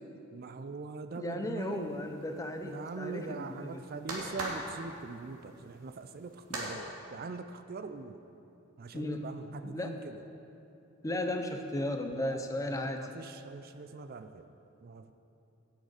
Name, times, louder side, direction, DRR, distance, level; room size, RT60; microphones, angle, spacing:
voice 1, 0.3-2.0 2.6-8.2 8.8-10.2 12.2-14.5 14.8-15.1, right 4 dB, 40° right, 9 dB, 0.4 m, -42 dB
voice 2, 1.2-3.8 8.9-9.3 9.6-9.9 11.0-13.1, left 1 dB, 15° left, 5 dB, 0.6 m, -35 dB
sound 1, 1.6-6.7, right 2 dB, 80° right, 2.3 m, -42 dB
17.5 x 6.5 x 4.9 m, 2.9 s
head